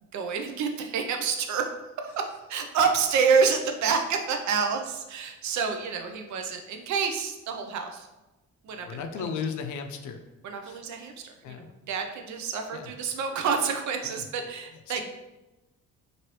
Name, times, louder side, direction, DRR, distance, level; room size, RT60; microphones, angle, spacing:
voice 1, 0.1-1.7 2.0-8.1 8.6-9.3 10.4-15.0, right 5 dB, 70° right, 5 dB, 0.5 m, -28 dB
voice 2, 8.7-10.2 10.6-10.8 11.4-11.7 12.7-12.9 14.0-14.2 14.9-15.0, left 6 dB, 75° left, 6 dB, 0.5 m, -35 dB
2.9 x 2.6 x 3.1 m, 1.0 s
cardioid pair, 90°, 30 cm